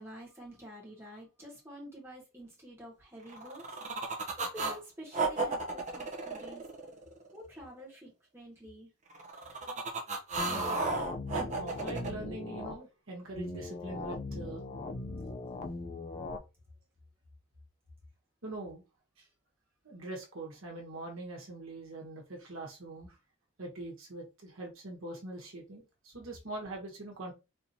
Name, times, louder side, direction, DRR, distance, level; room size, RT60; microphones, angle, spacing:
voice 1, 0.0-6.7 7.3-8.9, equal, 10° right, 1.4 m, -49 dB
sound 1, 3.3-4.8 5.1-7.3 9.1-12.1, right 3 dB, 35° right, 0.7 m, -34 dB
sound 2, 10.4-12.8 13.4-16.4, left 2 dB, 35° left, 0.4 m, -39 dB
voice 2, 11.3-14.6 18.4-18.8 19.2-19.3 19.8-23.2 23.6-27.3, right 2 dB, 70° right, 1.3 m, -43 dB
4.2 x 2.9 x 2.7 m
head